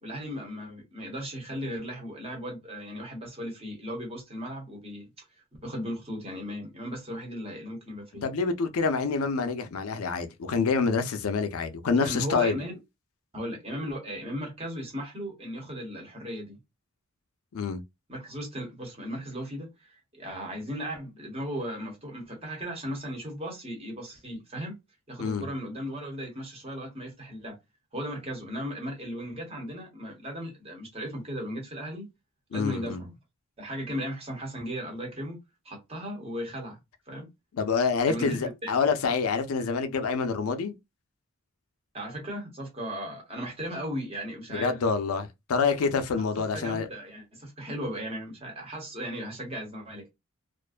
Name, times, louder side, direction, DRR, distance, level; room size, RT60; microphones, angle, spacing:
voice 1, 0.0-5.1 5.6-8.2 12.0-12.8 13.3-16.6 18.1-24.8 25.1-27.6 27.9-32.1 32.5-33.1 33.6-35.4 35.6-36.8 37.1-37.3 38.1-38.7 41.9-44.8 46.5-50.1, equal, 25° right, 1.0 m, -36 dB
voice 2, 8.2-12.6 17.5-17.8 25.2-25.4 32.5-33.0 37.5-40.8 44.5-46.9, left 5 dB, 75° left, 0.4 m, -27 dB
2.4 x 2.2 x 2.4 m
head